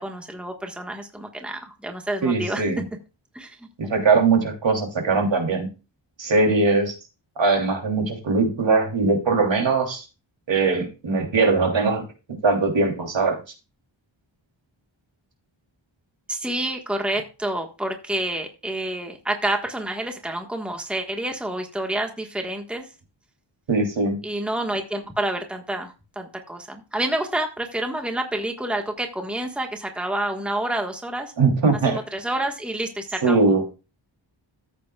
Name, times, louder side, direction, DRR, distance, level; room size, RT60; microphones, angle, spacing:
voice 1, 0.0-2.6 3.3-3.5 16.3-22.9 24.2-31.3 31.9-33.4, right 1 dB, ahead, 3 dB, 1.4 m, -28 dB
voice 2, 2.2-2.8 3.8-5.7 6.2-6.9 7.4-10.0 10.5-13.4 23.7-24.2 31.4-32.0 33.2-33.6, right 3 dB, 65° right, 2 dB, 3.1 m, -21 dB
14.0 x 8.3 x 2.3 m, 0.30 s
wide cardioid pair, 110°, 47 cm